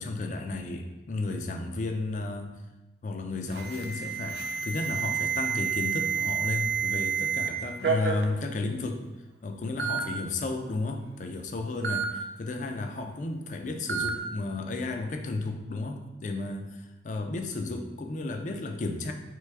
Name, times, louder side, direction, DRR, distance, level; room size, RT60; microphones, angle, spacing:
voice 1, 0.0-2.6 3.0-9.0 9.4-19.1, left 2 dB, 40° left, 5 dB, 0.4 m, -33 dB
Alarm, 3.5-7.5 7.8-8.2 9.1-9.2 9.8-10.0 11.8-12.1 13.9-14.1, right 6 dB, 60° right, 0.5 m, -29 dB
4.6 x 3.3 x 3.4 m, 1.1 s
head